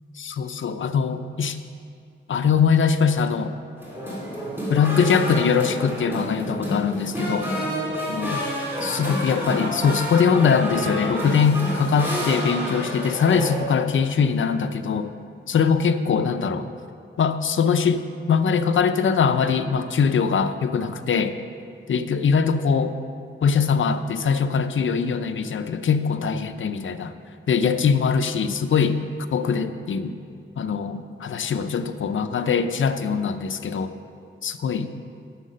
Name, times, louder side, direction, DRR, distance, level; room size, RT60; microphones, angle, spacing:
voice 1, 0.2-1.6 2.3-3.5 4.7-7.5 8.1-8.4 8.8-15.1 15.5-16.7 17.2-18.0 18.3-21.3 21.9-22.9 23.4-27.1 27.5-29.0 29.3-30.1 30.6-33.9 34.4-34.9, left 6 dB, 70° left, 9 dB, 0.5 m, -22 dB
sound 1, 3.8-13.6, equal, 10° right, 2.4 m, -29 dB
9.5 x 6.5 x 6.4 m, 2.3 s
wide cardioid pair, 130°, 21 cm